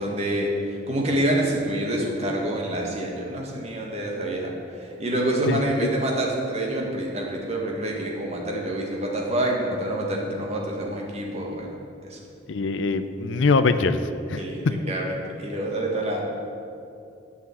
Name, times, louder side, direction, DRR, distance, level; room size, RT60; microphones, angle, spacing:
voice 1, 0.0-11.7 12.0-12.2 14.4-16.2, right 1 dB, 35° right, -1 dB, 1.5 m, -27 dB
voice 2, 5.5-5.9 12.5-14.0 14.3-14.7, left 4 dB, 80° left, 10 dB, 0.5 m, -23 dB
8.6 x 5.7 x 7.7 m, 2.5 s
head